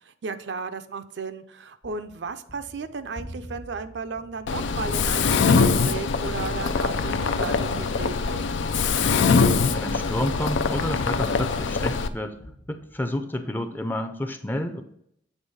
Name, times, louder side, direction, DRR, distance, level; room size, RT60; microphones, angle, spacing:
voice 1, 0.0-8.4, right 4 dB, 70° right, 9 dB, 0.5 m, -34 dB
Gunshot gunfire, 1.8-11.5 11.9-13.4, equal, 60° left, 1.3 m, -45 dB
Mechanisms, 4.5-12.1, left 5 dB, 85° left, 0.5 m, -23 dB
voice 2, 9.7-12.4 12.7-14.8, left 1 dB, 10° left, 8 dB, 0.5 m, -30 dB
8.1 x 3.4 x 5.4 m, 0.73 s
head